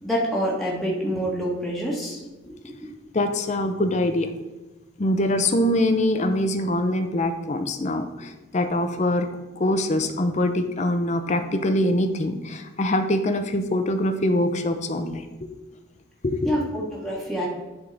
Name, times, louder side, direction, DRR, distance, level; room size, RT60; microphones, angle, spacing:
voice 1, 0.0-2.9 9.9-10.0 16.4-17.5, equal, ahead, -5 dB, 1.2 m, -27 dB
voice 2, 3.1-4.3 5.0-9.3 9.6-15.5 16.2-16.5, left 1 dB, 35° left, 7 dB, 0.6 m, -24 dB
10.5 x 3.6 x 3.9 m, 1.1 s
head